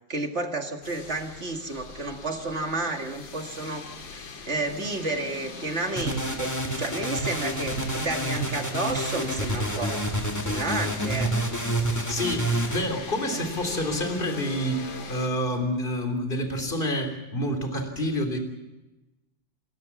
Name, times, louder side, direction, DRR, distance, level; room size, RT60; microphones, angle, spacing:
voice 1, 0.1-3.8 4.1-10.1 10.4-11.6, right 2 dB, 35° right, 4 dB, 2.2 m, -31 dB
sound 1, 0.8-15.3, left 4 dB, 75° left, 3.0 m, -41 dB
sound 2, 6.0-12.8, right 1 dB, 10° left, 2.1 m, -28 dB
voice 2, 12.1-18.4, equal, 25° left, 6 dB, 3.5 m, -28 dB
29.0 x 14.5 x 7.2 m, 1.0 s
omnidirectional pair, 2.1 m